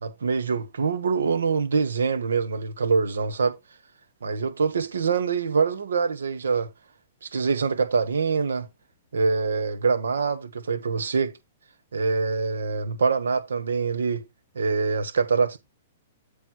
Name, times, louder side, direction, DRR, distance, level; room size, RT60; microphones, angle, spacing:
voice 1, 0.0-3.5 4.2-6.7 7.2-8.7 9.1-11.3 11.9-14.2 14.5-15.6, right 5 dB, 75° right, 1.4 m, -24 dB
7.6 x 4.9 x 4.4 m
hypercardioid pair, 115°, 0 cm